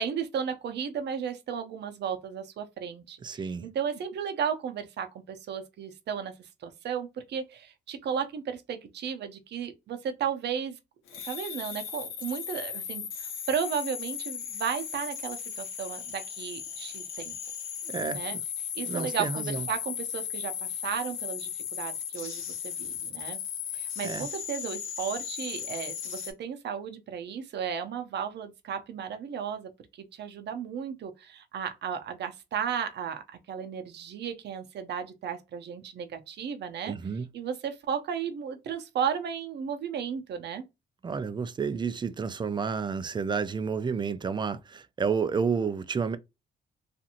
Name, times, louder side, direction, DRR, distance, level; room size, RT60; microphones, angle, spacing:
voice 1, 0.0-6.3 6.6-10.8 11.3-17.4 18.1-18.4 18.7-23.4 23.8-29.7 30.0-40.6, right 7 dB, 60° right, 0.6 m, -34 dB
voice 2, 3.2-3.7 17.9-18.4 18.9-19.6 24.0-24.3 36.9-37.3 41.0-46.2, right 5 dB, 25° right, 0.3 m, -30 dB
sound 1, 11.1-26.3, left 8 dB, 85° left, 0.8 m, -36 dB
2.8 x 2.5 x 2.5 m
cardioid pair, 90°, 20 cm